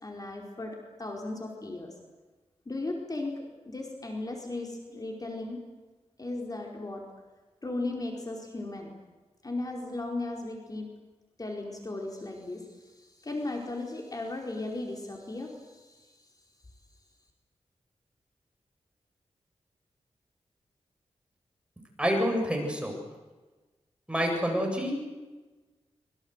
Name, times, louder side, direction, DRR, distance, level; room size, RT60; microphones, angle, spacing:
voice 1, 0.0-1.9 2.6-5.6 6.2-7.0 7.6-8.9 9.4-10.9 11.4-16.2, left 2 dB, 35° left, 1 dB, 4.7 m, -36 dB
voice 2, 22.0-23.0 24.1-25.0, equal, 10° right, 2 dB, 7.8 m, -27 dB
26.0 x 23.5 x 8.2 m, 1.2 s
wide cardioid pair, 75°, 11 cm